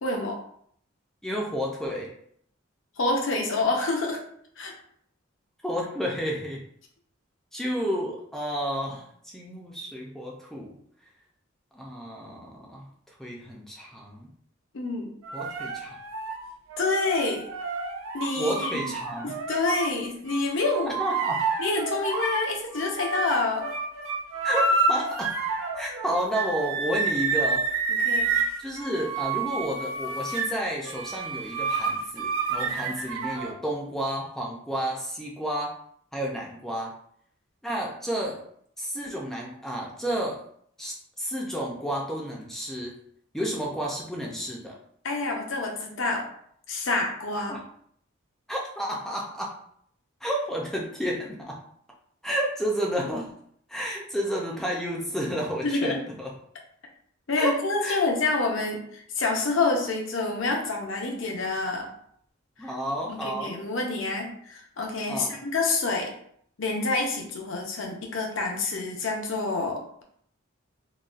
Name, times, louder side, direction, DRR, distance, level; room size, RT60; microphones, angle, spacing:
voice 1, 0.0-0.4 3.0-4.2 4.6-4.7 14.7-15.1 16.8-17.5 18.1-18.9 19.2-21.0 21.6-23.7 27.9-28.4 32.6-32.9 45.0-46.3 46.7-47.5 55.6-56.0 57.3-61.9 62.6-62.7 63.1-66.1 66.6-70.0, left 3 dB, 65° left, 1 dB, 0.6 m, -27 dB
voice 2, 1.2-2.1 5.6-6.6 7.5-10.8 11.7-12.9 13.2-14.3 15.3-15.9 18.4-19.3 20.9-21.4 24.4-25.4 25.8-27.6 28.6-35.7 36.1-36.9 37.6-38.4 38.8-40.4 40.8-43.0 43.3-44.8 47.5-47.6 48.5-49.6 50.2-51.6 52.2-53.3 53.7-56.3 57.4-57.5 57.8-58.0 62.6-63.6 65.1-65.4, equal, ahead, -2 dB, 0.4 m, -31 dB
sound 1, 15.2-19.9 20.3-22.4 22.7-33.5, right 4 dB, 75° right, 0.5 m, -29 dB
3.9 x 2.2 x 2.4 m, 0.65 s
head